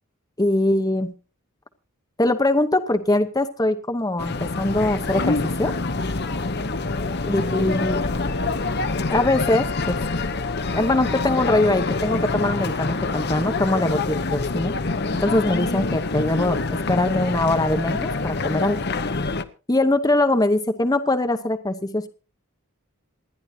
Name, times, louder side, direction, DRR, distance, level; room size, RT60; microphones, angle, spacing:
voice 1, 0.4-1.1 2.2-5.7 7.2-8.0 9.1-10.0 10.7-14.7 15.2-18.8 19.7-22.1, left 1 dB, 15° left, 8 dB, 0.9 m, -22 dB
sound 1, 4.2-19.4, left 3 dB, 50° left, 0.9 m, -26 dB
27.5 x 10.5 x 2.8 m, 0.33 s
head